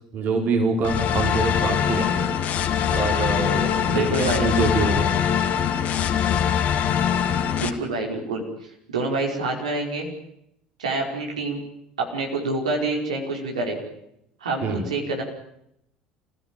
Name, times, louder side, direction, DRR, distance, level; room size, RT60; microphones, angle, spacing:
voice 1, 0.1-2.3 2.9-5.1 14.6-14.8, right 3 dB, 50° right, 3 dB, 4.6 m, -25 dB
sound 1, 0.8-7.7, left 8 dB, 45° left, 2.3 m, -23 dB
voice 2, 3.9-4.4 7.5-8.4 8.9-10.1 10.8-11.6 12.0-13.8 14.4-15.2, right 2 dB, 75° right, 0 dB, 5.1 m, -27 dB
29.0 x 16.5 x 9.0 m, 0.77 s
figure-of-eight pair, 65°, 4 cm